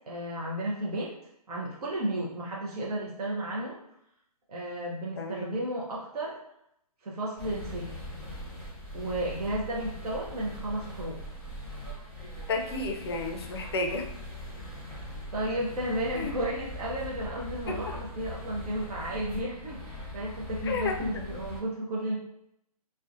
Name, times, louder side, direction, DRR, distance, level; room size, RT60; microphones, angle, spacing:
voice 1, 0.1-1.1 1.5-3.8 4.5-6.4 7.0-8.0 8.9-11.3 15.3-22.2, right 1 dB, 75° right, -4 dB, 0.6 m, -33 dB
voice 2, 5.2-5.5 12.5-14.1 16.1-16.3 17.7-17.8 20.7-21.2, left 3 dB, 40° left, 4 dB, 0.4 m, -32 dB
sound 1, 7.4-21.6, left 1 dB, 10° left, 0.8 m, -41 dB
2.4 x 2.1 x 2.4 m, 0.77 s
hypercardioid pair, 145°, 20 cm